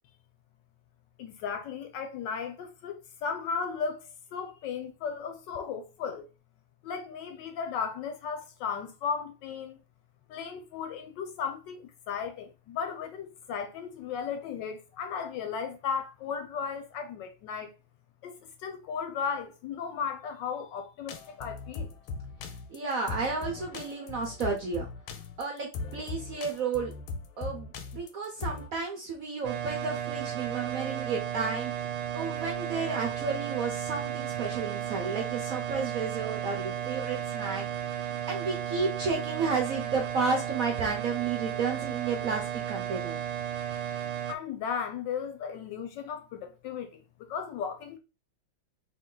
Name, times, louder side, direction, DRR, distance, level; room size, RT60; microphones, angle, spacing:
voice 1, 1.2-4.0 4.3-6.3 6.8-9.8 10.3-17.7 18.2-21.9 44.3-48.0, left 6 dB, 75° left, 1.2 m, -35 dB
sound 1, 21.1-28.7, left 4 dB, 90° left, 1.5 m, -39 dB
voice 2, 22.7-24.9 25.4-26.9 27.4-31.7 32.1-43.2, right 4 dB, 65° right, 0.9 m, -32 dB
sound 2, 29.4-44.3, right 10 dB, 90° right, 1.4 m, -34 dB
3.7 x 2.7 x 3.7 m
omnidirectional pair, 2.2 m